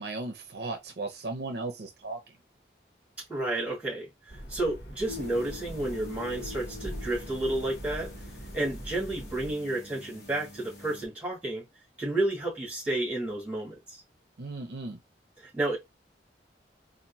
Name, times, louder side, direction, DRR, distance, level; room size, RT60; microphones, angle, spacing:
voice 1, 0.0-2.2 14.4-15.0, right 3 dB, 65° right, 0.7 m, -36 dB
voice 2, 3.3-8.1 8.5-11.6 12.0-14.0 15.4-15.8, right 2 dB, 10° right, 2.1 m, -31 dB
sound 1, 4.3-9.5, right 1 dB, 80° left, 1.3 m, -42 dB
sound 2, 5.0-11.1, left 3 dB, 60° left, 1.2 m, -45 dB
4.2 x 2.6 x 2.7 m
head